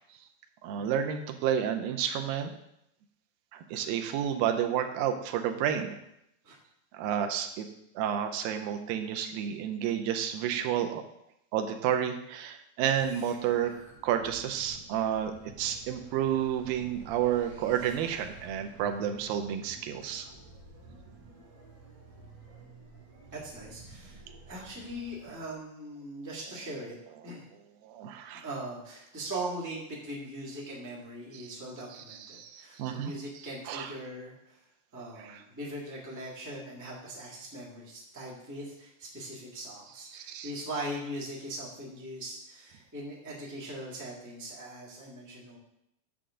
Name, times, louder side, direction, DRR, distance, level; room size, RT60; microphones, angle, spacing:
voice 1, 0.6-2.5 3.5-6.0 6.9-7.7 8.0-11.0 11.5-13.7 14.0-20.3 27.8-28.5 31.3-31.5 31.9-33.9 34.9-35.4 40.1-40.5, right 9 dB, 85° right, 6 dB, 2.5 m, -31 dB
sound 1, 12.9-25.6, right 3 dB, 50° right, 4.7 m, -51 dB
voice 2, 23.3-24.2 24.5-27.0 27.2-27.4 28.3-34.6 34.9-45.6, right 1 dB, 10° right, -5 dB, 1.0 m, -40 dB
9.0 x 7.0 x 3.7 m, 0.79 s
omnidirectional pair, 4.0 m